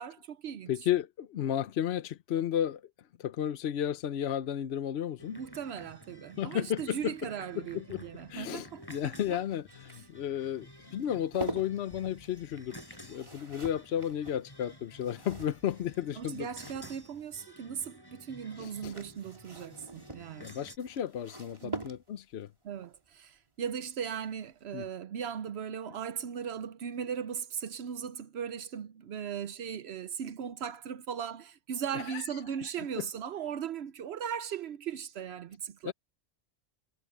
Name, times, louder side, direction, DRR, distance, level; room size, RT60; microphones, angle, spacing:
voice 1, 0.0-0.7 5.3-9.4 16.2-20.5 21.6-21.8 22.6-35.9, right 8 dB, 75° right, 0.9 m, -38 dB
voice 2, 0.7-2.8 3.2-5.4 6.4-7.1 7.5-8.0 8.3-16.5 18.6-18.9 20.4-22.5 24.7-24.8 31.9-32.3 33.0-33.1 35.8-35.9, left 10 dB, 75° left, 1.0 m, -33 dB
sound 1, 5.2-20.8, equal, 20° left, 6.2 m, -53 dB
sound 2, 7.9-15.0 15.3-17.3, equal, 55° left, 4.9 m, -59 dB
sound 3, 8.7-17.4 18.5-22.4 24.0-24.3 24.6-24.7, right 1 dB, 25° right, 3.3 m, -45 dB
omnidirectional pair, 1.1 m